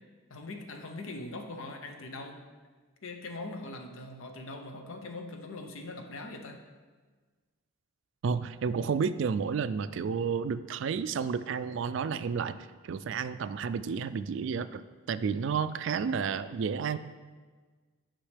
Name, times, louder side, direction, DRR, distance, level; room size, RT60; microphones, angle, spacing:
voice 1, 0.3-2.5 3.0-6.6, left 2 dB, 75° left, 4 dB, 0.8 m, -41 dB
voice 2, 8.2-12.6 12.8-14.8 15.1-17.0, right 6 dB, 60° right, 14 dB, 0.3 m, -31 dB
10.0 x 5.4 x 3.4 m, 1.4 s
head